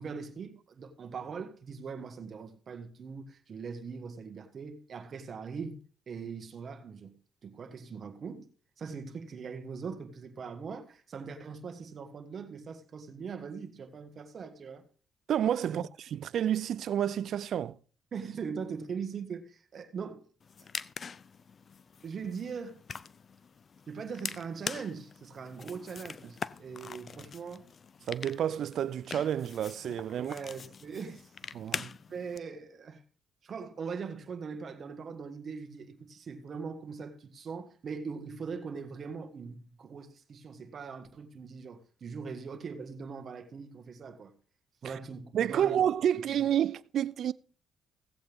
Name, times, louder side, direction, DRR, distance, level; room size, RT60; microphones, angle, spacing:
voice 1, 0.0-5.8 6.1-7.1 7.4-8.5 8.8-14.8 15.7-15.8 18.1-20.2 22.0-22.8 23.9-27.7 30.2-31.3 31.6-31.7 32.1-33.0 33.4-44.3 44.8-45.8, right 5 dB, 55° right, 1.6 m, -41 dB
voice 2, 15.3-15.8 16.1-17.8 28.1-30.3 31.5-31.9 44.8-45.0 45.3-47.3, right 10 dB, 70° right, 0.4 m, -29 dB
sound 1, 20.4-32.4, left 6 dB, 45° left, 0.5 m, -43 dB
16.5 x 7.9 x 3.6 m
cardioid pair, 80°, 0 cm